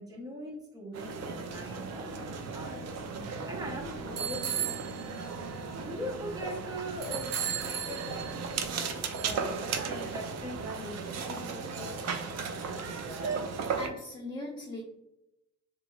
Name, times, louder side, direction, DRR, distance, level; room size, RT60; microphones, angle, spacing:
voice 1, 0.0-2.8 3.5-4.8 5.7-8.9 9.2-9.5 9.9-11.0 11.3-12.1, equal, 10° right, -2 dB, 0.8 m, -41 dB
sound 1, 0.9-13.9, right 5 dB, 60° right, 0.5 m, -35 dB
voice 2, 13.8-14.8, left 2 dB, 15° left, -2 dB, 0.5 m, -39 dB
3.0 x 2.7 x 2.3 m, 0.87 s
cardioid pair, 90°, 30 cm